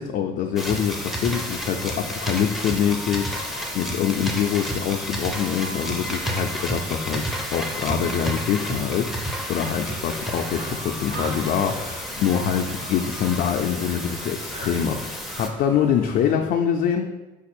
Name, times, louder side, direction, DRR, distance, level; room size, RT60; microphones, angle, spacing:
voice 1, 0.0-17.2, left 8 dB, 60° left, 3 dB, 0.4 m, -25 dB
sound 1, 0.6-15.5, equal, ahead, 0.6 m, -31 dB
sound 2, 2.1-9.1 9.3-9.9 10.1-11.6 11.9-12.3 12.6-14.1 14.4-14.8 15.1-16.5, right 1 dB, 65° right, 0.9 m, -45 dB
Conversation, 9.6-16.3, right 1 dB, 40° right, 1.2 m, -41 dB
5.1 x 2.4 x 4.3 m, 1.1 s
cardioid pair, 110°, 17 cm